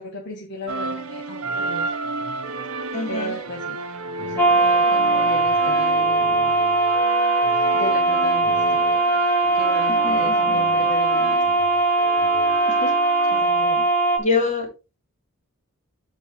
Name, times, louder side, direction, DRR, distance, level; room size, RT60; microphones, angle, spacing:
voice 1, 0.0-1.9 3.1-3.8 4.2-6.6 7.7-8.8 9.5-11.4 13.3-13.9, left 1 dB, 55° left, 1 dB, 1.3 m, -35 dB
sound 1, 0.7-13.4, right 3 dB, 80° right, 1.2 m, -32 dB
voice 2, 2.9-3.3 10.0-10.5 12.8-12.9 14.2-14.7, left 4 dB, 35° left, 3 dB, 2.7 m, -25 dB
sound 2, 4.4-14.2, right 3 dB, 10° left, 1.6 m, -20 dB
13.0 x 4.4 x 3.3 m, 0.29 s
head